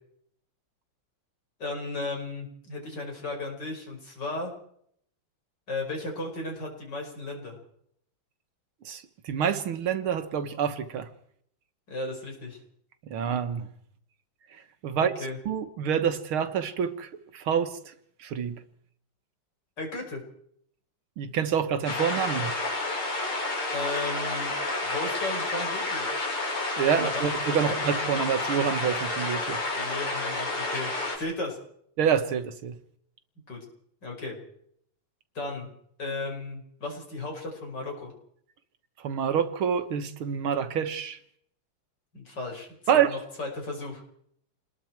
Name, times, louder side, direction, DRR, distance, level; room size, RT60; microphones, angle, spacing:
voice 1, 1.6-4.5 5.7-7.6 11.9-12.6 14.9-15.4 19.8-20.2 23.7-24.5 24.8-26.1 27.0-27.3 27.6-27.8 29.7-31.6 33.5-33.6 34.0-34.4 35.3-35.7 36.0-38.1 42.1-44.0, left 2 dB, 50° left, 6.0 m, -35 dB
voice 2, 8.9-11.1 13.0-13.7 14.5-15.1 15.5-17.9 18.2-18.6 21.2-22.5 26.8-29.6 32.0-32.8 39.0-41.2 42.9-43.2, right 8 dB, 70° right, 2.1 m, -27 dB
sound 1, 21.8-31.2, left 2 dB, 80° left, 6.0 m, -30 dB
28.0 x 21.0 x 4.6 m
omnidirectional pair, 2.4 m